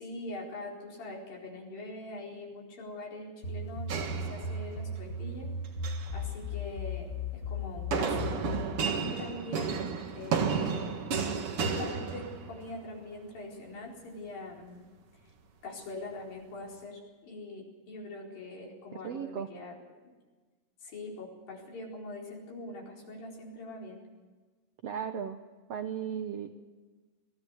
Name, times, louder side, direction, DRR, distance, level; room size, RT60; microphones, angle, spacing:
voice 1, 0.0-5.5 6.1-8.5 9.0-11.0 11.6-14.8 15.6-19.8 20.0-20.1 20.8-24.0, left 2 dB, 75° left, -2 dB, 6.1 m, -43 dB
sound 1, 3.4-8.7, left 2 dB, 30° left, 5.0 m, -36 dB
sound 2, 3.9-5.0 5.7-6.1 7.9-12.7, right 6 dB, 50° right, 2.1 m, -32 dB
voice 2, 19.0-19.5 24.8-25.4 25.7-26.6, right 8 dB, 70° right, 7 dB, 1.5 m, -36 dB
21.5 x 16.0 x 8.3 m, 1.3 s
omnidirectional pair, 4.1 m